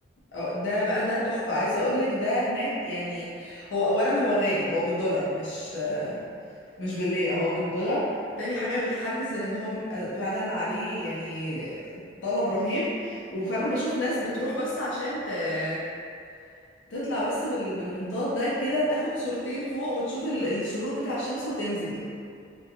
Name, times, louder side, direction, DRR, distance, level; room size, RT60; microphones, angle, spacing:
voice 1, 0.3-6.2 6.8-8.1 8.4-15.8 16.9-22.0, left 1 dB, 90° left, -8 dB, 0.5 m, -28 dB
2.3 x 2.2 x 2.8 m, 2.4 s
head